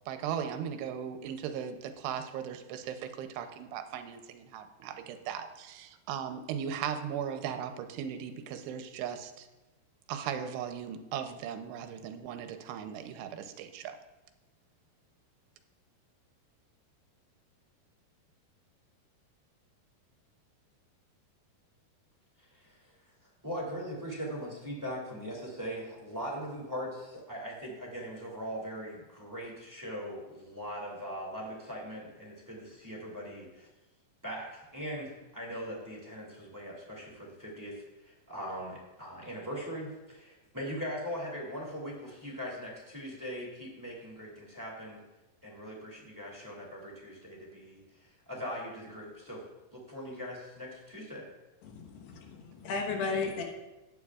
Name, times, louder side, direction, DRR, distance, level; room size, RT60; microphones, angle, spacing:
voice 1, 0.1-9.5 10.1-14.0, right 8 dB, 85° right, 7 dB, 2.9 m, -38 dB
voice 2, 22.4-22.9 23.4-33.7 34.2-45.0 45.4-49.4 49.7-51.2, equal, 10° right, -3 dB, 1.2 m, -40 dB
voice 3, 51.7-53.4, left 4 dB, 80° left, 2 dB, 3.3 m, -34 dB
15.0 x 9.4 x 2.4 m, 1.1 s
omnidirectional pair, 4.8 m